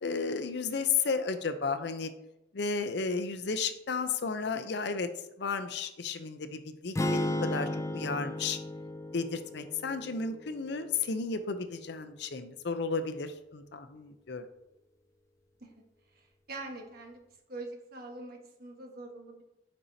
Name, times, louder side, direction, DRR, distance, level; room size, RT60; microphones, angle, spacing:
voice 1, 0.0-2.1 2.5-5.1 5.4-8.6 9.1-14.4, left 5 dB, 60° left, 9 dB, 0.6 m, -33 dB
sound 1, 7.0-11.1, left 1 dB, 15° left, 0.4 m, -34 dB
voice 2, 16.5-17.2 17.5-19.4, right 2 dB, 50° right, 1 dB, 1.4 m, -43 dB
8.7 x 5.4 x 2.7 m, 0.88 s
head